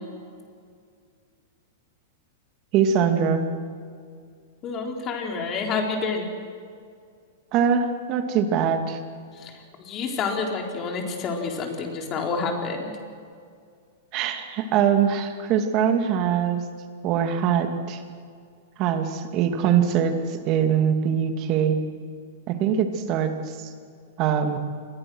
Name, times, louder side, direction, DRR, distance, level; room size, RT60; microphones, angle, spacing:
voice 1, 2.7-3.5 7.5-9.0 14.1-16.6 17.0-18.0 18.8-21.8 22.5-23.3 24.2-24.6, right 8 dB, 35° right, 6 dB, 2.5 m, -22 dB
voice 2, 4.6-6.3 9.3-9.5 9.8-12.9, left 4 dB, 30° left, 2 dB, 4.0 m, -28 dB
27.5 x 21.5 x 6.4 m, 2.2 s
hypercardioid pair, 145°, 0 cm